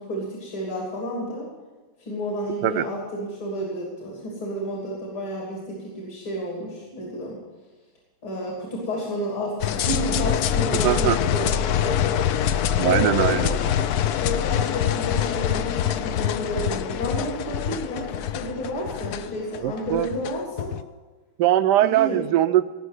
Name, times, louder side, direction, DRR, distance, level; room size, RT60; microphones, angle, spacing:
voice 1, 0.0-1.5 2.0-7.4 8.2-12.2 12.5-13.6 14.2-20.7 21.8-22.2, equal, 65° left, -3 dB, 3.9 m, -31 dB
sound 1, 9.6-20.8, left 10 dB, 85° left, 0.8 m, -25 dB
voice 2, 10.8-11.2 12.8-13.5 19.6-20.1 21.4-22.6, right 13 dB, 80° right, 12 dB, 0.9 m, -21 dB
18.0 x 6.3 x 8.1 m, 1.3 s
omnidirectional pair, 2.3 m